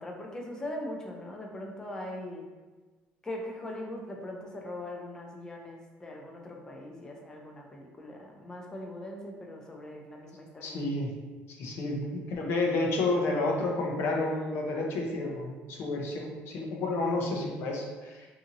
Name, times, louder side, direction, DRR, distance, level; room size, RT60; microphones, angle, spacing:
voice 1, 0.0-2.4 3.2-10.8, left 1 dB, 15° left, 0 dB, 0.5 m, -40 dB
voice 2, 10.6-11.1 11.6-18.3, left 2 dB, 60° left, 0 dB, 0.6 m, -30 dB
2.7 x 2.6 x 2.6 m, 1.3 s
cardioid pair, 125°, 5 cm